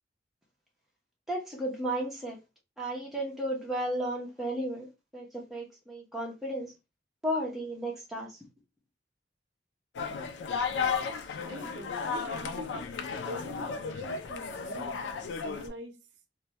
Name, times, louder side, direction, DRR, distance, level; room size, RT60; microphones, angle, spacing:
voice 1, 1.3-2.4 2.8-6.7 7.2-8.4, right 1 dB, ahead, 0.6 m, -34 dB
sound 1, 9.9-15.7, left 5 dB, 85° left, 0.4 m, -34 dB
voice 2, 11.5-15.0 15.4-16.0, right 1 dB, 85° right, 0.5 m, -44 dB
2.1 x 2.1 x 2.7 m
head